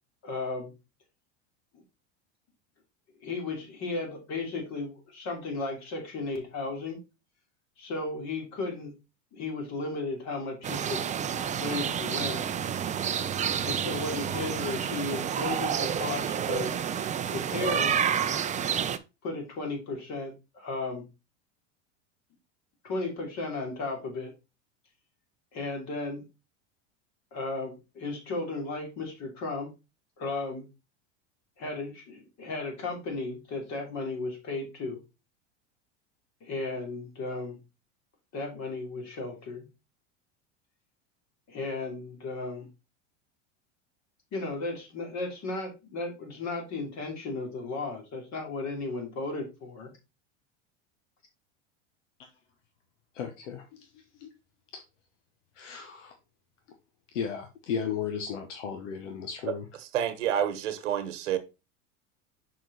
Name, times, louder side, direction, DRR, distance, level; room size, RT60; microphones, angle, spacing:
voice 1, 0.2-0.7 1.7-1.8 3.2-7.0 7.8-8.9 9.3-11.0 11.6-12.4 13.6-16.7 17.3-18.1 19.2-21.1 22.8-24.3 25.5-26.2 27.3-29.7 30.2-30.7 31.6-35.0 36.4-37.6 38.3-39.7 41.5-42.7 44.3-49.9, left 3 dB, 50° left, 3.1 m, -35 dB
sound 1, 10.6-19.0, right 8 dB, 20° right, 0.5 m, -29 dB
voice 2, 53.1-53.9 54.2-54.3 55.6-56.1 57.1-59.7, left 7 dB, 80° left, 1.2 m, -35 dB
voice 3, 59.8-61.4, right 9 dB, 80° right, 1.2 m, -29 dB
6.1 x 4.5 x 4.0 m
hypercardioid pair, 100°, 36 cm